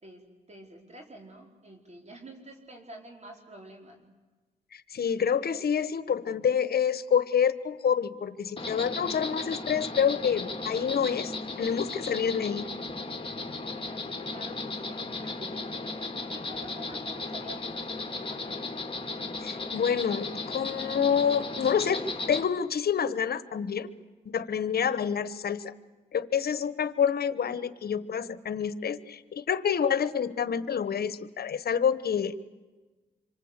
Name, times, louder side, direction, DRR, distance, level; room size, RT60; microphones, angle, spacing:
voice 1, 0.0-4.0 14.3-18.7, right 1 dB, 45° right, 1 dB, 4.8 m, -48 dB
voice 2, 4.7-12.7 19.4-23.9 24.2-25.7 26.1-32.3, left 7 dB, 70° left, 14 dB, 1.2 m, -28 dB
Insect, 8.6-22.4, left 3 dB, 35° left, 2.8 m, -36 dB
27.0 x 25.0 x 8.2 m, 1.3 s
cardioid pair, 65°, 16 cm